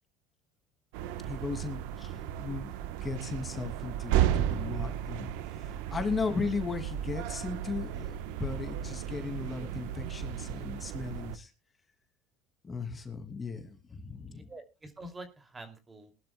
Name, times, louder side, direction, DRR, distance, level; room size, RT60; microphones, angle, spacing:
sound 1, 0.9-11.4, right 11 dB, 80° right, 1.1 m, -34 dB
voice 1, 1.2-11.5 12.6-14.5, left 4 dB, 25° left, 6 dB, 2.6 m, -37 dB
voice 2, 14.3-16.1, right 2 dB, 20° right, 7 dB, 2.7 m, -46 dB
21.0 x 12.0 x 2.3 m, 0.28 s
supercardioid pair, 105°, 0 cm